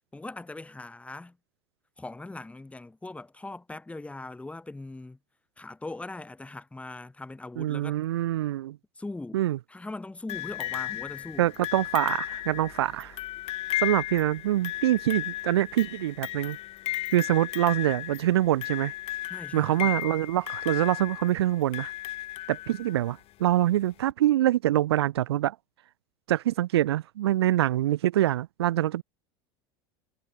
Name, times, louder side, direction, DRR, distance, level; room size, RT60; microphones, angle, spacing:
voice 1, 0.1-1.4 2.0-5.2 5.6-8.0 9.0-9.4 9.7-11.5 19.3-20.0, left 2 dB, 10° left, 4.6 m, -40 dB
voice 2, 7.6-8.8 9.3-9.6 11.4-13.2 13.8-16.6 17.1-18.9 19.5-21.9 22.5-25.6 26.3-29.0, right 14 dB, 85° right, 0.9 m, -25 dB
sound 1, 10.3-23.1 24.1-24.2, left 15 dB, 50° left, 1.9 m, -35 dB
hypercardioid pair, 100°, 13 cm